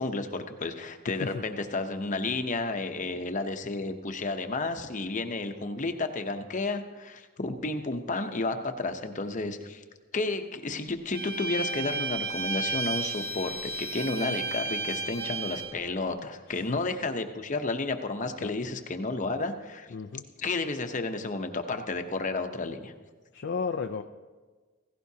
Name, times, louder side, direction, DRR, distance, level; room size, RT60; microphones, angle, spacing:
voice 1, 0.0-9.8 10.1-19.9 20.4-22.9, left 3 dB, 40° left, 6 dB, 0.8 m, -32 dB
Bowed string instrument, 11.1-15.8, right 3 dB, 50° right, 1.6 m, -33 dB
voice 2, 16.5-16.8 18.4-18.5 19.9-20.2 23.3-24.0, left 5 dB, 60° left, 7 dB, 0.4 m, -33 dB
16.5 x 16.0 x 2.8 m, 1.4 s
head